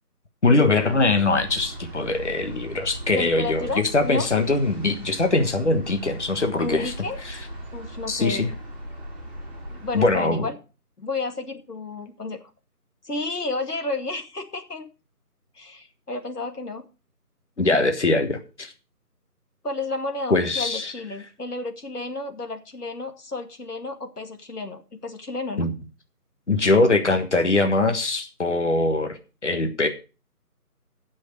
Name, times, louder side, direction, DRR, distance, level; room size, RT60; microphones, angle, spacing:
voice 1, 0.4-6.9 7.2-7.3 8.1-8.5 9.9-10.5 17.6-18.7 20.3-20.9 25.6-25.7 26.5-29.2 29.4-29.9, left 3 dB, 45° left, 7 dB, 1.4 m, -22 dB
sound 1, 0.8-10.2, right 1 dB, 30° right, 6.1 m, -38 dB
voice 2, 3.1-4.3 6.6-7.4 7.7-8.5 9.7-10.6 11.0-12.4 13.0-14.9 15.6-16.9 17.6-17.9 19.6-25.7, left 3 dB, 75° left, 6 dB, 2.2 m, -32 dB
15.0 x 6.4 x 4.7 m, 0.34 s
figure-of-eight pair, 175°, 47 cm